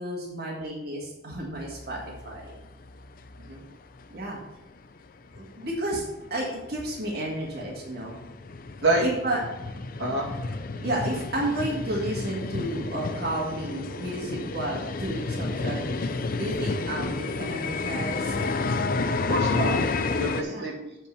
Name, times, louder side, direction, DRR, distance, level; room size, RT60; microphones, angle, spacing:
voice 1, 0.0-2.0 2.2-2.5 4.1-4.4 5.4-6.0 6.3-8.1 9.0-9.4 10.7-18.4 20.1-20.6, right 1 dB, 65° right, -2 dB, 1.9 m, -32 dB
sound 1, 1.6-3.6 4.0-4.1 4.6-4.7 5.0-5.1 5.4-20.4, left 3 dB, 55° left, 0.6 m, -31 dB
voice 2, 10.0-10.6 19.1-19.8 20.2-21.0, right 2 dB, 80° right, -2 dB, 2.0 m, -28 dB
8.3 x 4.4 x 6.8 m, 0.97 s
head